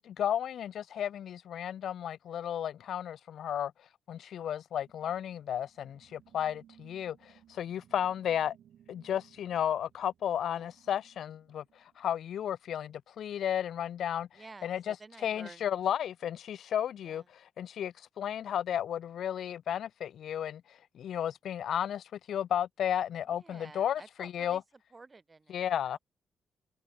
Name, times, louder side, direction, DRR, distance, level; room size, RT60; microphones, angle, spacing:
voice 1, 0.0-3.7 4.1-8.6 8.9-11.6 12.0-24.6 25.5-26.0, left 10 dB, 70° left, 0.4 m, -33 dB
sound 1, 4.8-12.5, right 10 dB, 70° right, 7.7 m, -62 dB
voice 2, 10.4-10.7 14.3-15.7 17.0-17.3 23.2-26.0, right 3 dB, 25° right, 5.1 m, -52 dB
cardioid pair, 130°, 0 cm